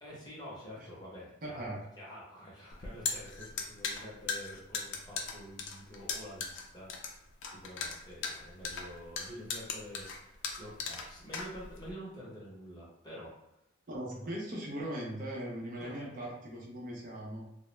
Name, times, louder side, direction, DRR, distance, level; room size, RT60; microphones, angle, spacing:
voice 1, 0.0-1.7 2.0-13.3 15.8-16.3, equal, 20° left, -6 dB, 0.8 m, -48 dB
voice 2, 1.4-1.8 13.9-17.5, right 1 dB, 45° right, -2 dB, 0.5 m, -39 dB
sound 1, 2.7-11.9, left 5 dB, 75° left, 0.4 m, -38 dB
2.1 x 2.0 x 3.0 m, 0.85 s
head